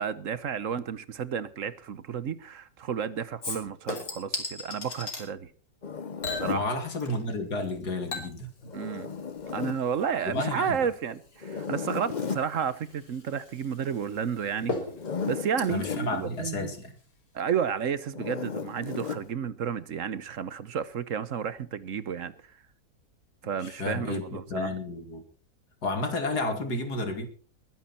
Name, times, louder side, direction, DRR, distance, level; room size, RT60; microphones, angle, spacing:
voice 1, 0.0-5.5 6.3-6.7 8.7-9.1 9.5-14.8 15.3-16.7 17.3-22.3 23.4-24.7, right 7 dB, 60° right, 1.2 m, -31 dB
Chink clink / Liquid, 3.4-5.3 6.2-7.4 7.6-16.7 17.0-17.1, left 3 dB, 65° left, 3.7 m, -40 dB
Zipper (clothing), 5.8-6.7 8.6-9.8 11.4-12.5 14.9-16.1 18.1-19.3, left 6 dB, 40° left, 0.7 m, -34 dB
voice 2, 6.4-8.7 10.2-10.9 15.7-16.9 23.6-25.2 25.8-27.3, left 2 dB, 90° left, 3.0 m, -32 dB
21.5 x 10.5 x 4.3 m
omnidirectional pair, 1.7 m